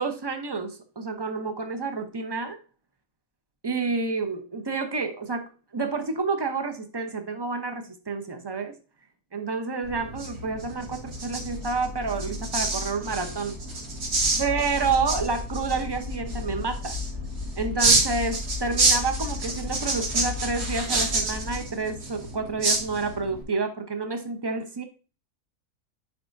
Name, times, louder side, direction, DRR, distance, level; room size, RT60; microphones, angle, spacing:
voice 1, 0.0-2.6 3.6-8.7 9.3-13.6 14.4-17.0 17.6-24.8, right 4 dB, 30° right, 6 dB, 0.4 m, -29 dB
sound 1, 9.8-23.4, right 2 dB, 90° right, 2.6 m, -29 dB
sound 2, 10.9-21.6, left 4 dB, 45° left, 0.5 m, -36 dB
9.4 x 4.9 x 2.6 m, 0.36 s
omnidirectional pair, 1.6 m